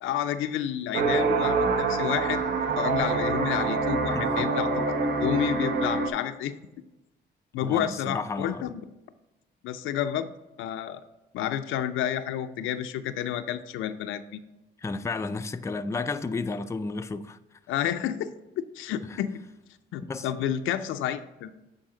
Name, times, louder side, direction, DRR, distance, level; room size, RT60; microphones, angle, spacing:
voice 1, 0.0-2.4 2.8-6.5 7.5-8.8 9.6-10.3 10.6-11.0 11.3-14.4 17.7-18.3 18.7-19.3 19.9-21.5, left 10 dB, 85° left, 0.5 m, -30 dB
sound 1, 0.9-6.1, right 4 dB, 60° right, 0.9 m, -26 dB
voice 2, 4.1-4.5 7.6-8.7 14.8-17.4 19.1-19.2 20.1-20.3, left 3 dB, 15° left, 0.4 m, -32 dB
9.0 x 4.1 x 3.8 m
cardioid pair, 90°, 20 cm